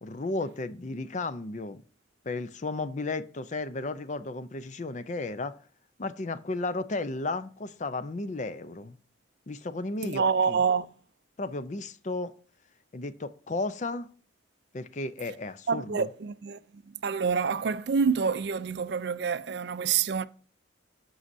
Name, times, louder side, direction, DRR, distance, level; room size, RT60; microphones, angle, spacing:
voice 1, 0.0-1.8 2.2-5.6 6.0-9.0 9.5-10.6 11.4-12.3 12.9-14.1 14.7-16.1, left 2 dB, 40° left, 0.5 m, -34 dB
voice 2, 10.0-10.9 15.7-20.3, right 6 dB, 55° right, 0.4 m, -27 dB
11.0 x 6.3 x 2.6 m
head